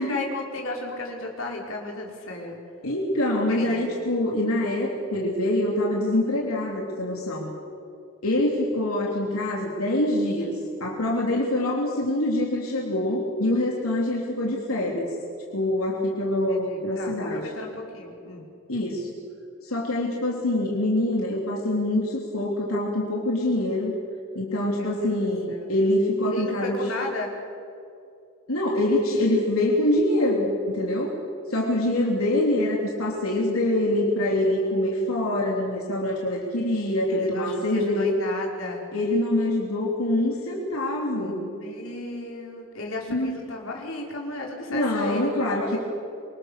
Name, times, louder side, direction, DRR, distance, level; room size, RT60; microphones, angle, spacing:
voice 1, 0.0-2.6 3.5-3.9 16.5-18.5 24.7-25.1 25.5-25.7 26.3-27.3 37.1-38.9 41.1-45.3 45.6-45.8, left 2 dB, 70° left, -1 dB, 5.5 m, -34 dB
voice 2, 2.8-7.5 8.2-15.1 15.5-17.5 18.7-19.2 19.6-23.9 24.4-26.8 28.5-31.1 31.5-38.1 38.9-41.4 43.1-43.4 44.7-45.8, left 1 dB, 90° left, -2 dB, 3.7 m, -25 dB
27.5 x 24.0 x 6.8 m, 2.5 s
head